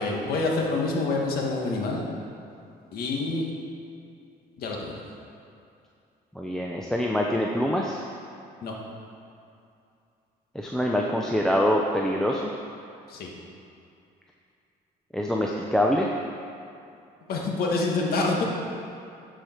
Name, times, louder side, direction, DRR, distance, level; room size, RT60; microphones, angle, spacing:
voice 1, 0.0-2.1 2.9-3.5 4.6-5.0 8.6-8.7 13.1-13.3 17.3-18.4, left 3 dB, 65° left, -1 dB, 1.6 m, -27 dB
voice 2, 6.4-8.0 10.5-12.5 15.1-16.1, equal, 5° left, -1 dB, 0.6 m, -25 dB
12.0 x 5.0 x 4.5 m, 2.6 s
cardioid pair, 110°, 17 cm